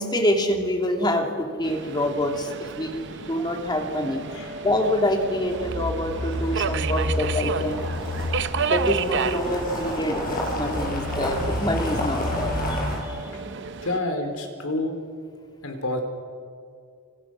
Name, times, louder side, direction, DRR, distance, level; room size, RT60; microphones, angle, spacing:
voice 1, 0.0-4.2 4.6-7.9 8.6-13.3, left 1 dB, 20° left, 3 dB, 2.8 m, -26 dB
Subway metro underground, 1.6-14.0, right 6 dB, 55° right, 0.8 m, -33 dB
sound 1, 3.1-13.6, equal, 20° right, 5.7 m, -43 dB
voice 2, 4.3-4.6 6.5-6.6 13.3-13.4 13.8-14.9 15.6-16.0, left 2 dB, 75° left, 5 dB, 4.3 m, -29 dB
sound 2, 5.5-13.0, left 1 dB, 40° left, 7.0 m, -29 dB
29.0 x 28.0 x 6.4 m, 2.3 s
head